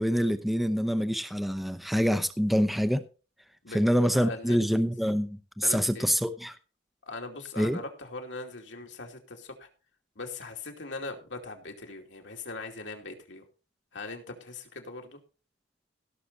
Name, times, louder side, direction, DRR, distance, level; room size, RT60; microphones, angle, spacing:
voice 1, 0.0-3.0 3.7-6.6 7.6-7.8, equal, ahead, 0.7 m, -26 dB
voice 2, 4.1-4.6 5.6-6.1 7.1-9.7 10.2-13.4 13.9-15.2, left 3 dB, 70° left, 2.6 m, -40 dB
17.0 x 6.5 x 4.1 m
head